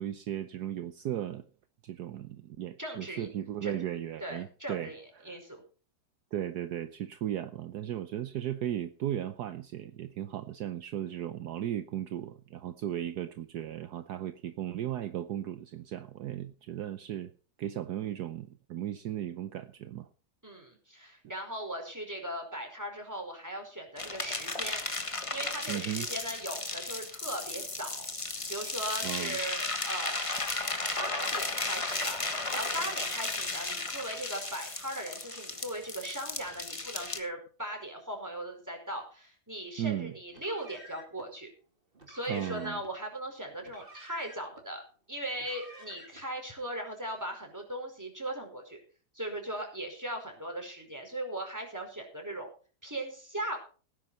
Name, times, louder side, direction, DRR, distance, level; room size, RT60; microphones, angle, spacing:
voice 1, 0.0-1.4 1.8-5.4 6.3-17.3 17.6-20.1 25.7-26.1 29.0-29.4 39.8-40.1 42.2-42.8, right 11 dB, 70° right, 11 dB, 1.3 m, -36 dB
voice 2, 2.8-3.3 3.6-3.7 4.2-5.6 20.4-28.1 28.5-30.5 31.0-41.5 42.1-48.8 49.1-52.5 52.8-53.6, right 1 dB, 10° right, 3 dB, 5.0 m, -39 dB
sound 1, 24.0-37.2, left 2 dB, 20° left, 1.4 m, -35 dB
Car, 40.3-41.3 41.9-42.9 43.6-44.6 45.3-46.3, right 1 dB, 30° right, 2.6 m, -51 dB
18.0 x 10.0 x 4.2 m, 0.38 s
omnidirectional pair, 1.9 m